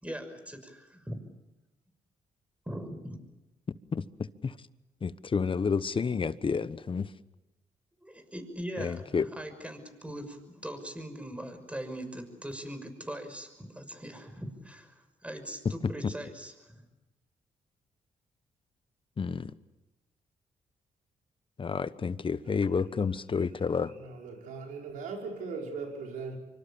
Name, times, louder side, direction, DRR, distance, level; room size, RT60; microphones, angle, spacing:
voice 1, 0.0-1.2 2.7-3.2 8.0-14.9 15.2-16.8, right 1 dB, 10° right, 6.1 m, -41 dB
voice 2, 3.9-4.6 5.0-7.1 8.8-9.3 19.2-19.5 21.6-23.9, left 5 dB, 40° left, 1.1 m, -30 dB
voice 3, 23.9-26.4, right 4 dB, 85° right, 5.0 m, -39 dB
25.5 x 25.0 x 7.1 m
supercardioid pair, 60°, 13 cm